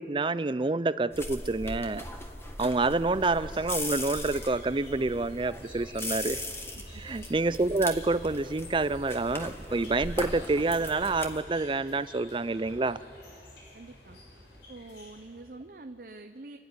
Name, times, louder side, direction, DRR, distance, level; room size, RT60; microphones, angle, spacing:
voice 1, 0.0-2.0 2.6-6.4 7.0-13.0, right 3 dB, 25° right, 15 dB, 0.4 m, -28 dB
sound 1, 1.1-11.4, left 1 dB, 15° left, 1.5 m, -39 dB
sound 2, 3.1-15.6, left 1 dB, 85° left, 4.9 m, -51 dB
voice 2, 13.7-14.2 14.7-16.6, right 2 dB, 50° right, 5 dB, 0.8 m, -46 dB
30.0 x 12.0 x 9.7 m, 2.3 s
head